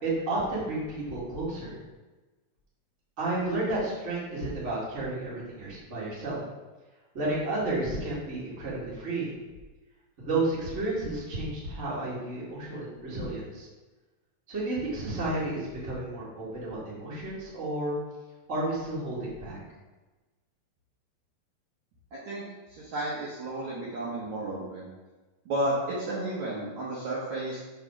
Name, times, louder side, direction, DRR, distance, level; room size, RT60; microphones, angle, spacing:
voice 1, 0.0-1.8 3.2-6.4 7.1-9.3 10.2-13.7 14.5-18.0 18.5-19.6, right 2 dB, 25° right, -7 dB, 1.8 m, -32 dB
voice 2, 22.1-24.9 25.5-27.6, right 1 dB, 60° right, -7 dB, 2.2 m, -32 dB
6.0 x 4.8 x 5.8 m, 1.2 s
omnidirectional pair, 4.3 m